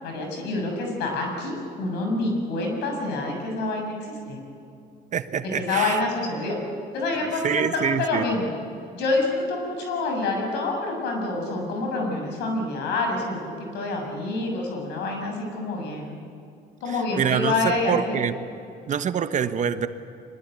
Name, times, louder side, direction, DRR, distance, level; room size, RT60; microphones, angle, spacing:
voice 1, 0.0-4.4 5.5-6.6 6.9-8.5 8.9-16.2 16.8-18.2, left 2 dB, 90° left, 2 dB, 7.0 m, -27 dB
voice 2, 5.1-6.0 7.4-8.2 16.9-18.4 18.9-19.9, right 7 dB, 45° right, 10 dB, 1.2 m, -25 dB
24.0 x 21.5 x 9.4 m, 2.5 s
cardioid pair, 110°, 17 cm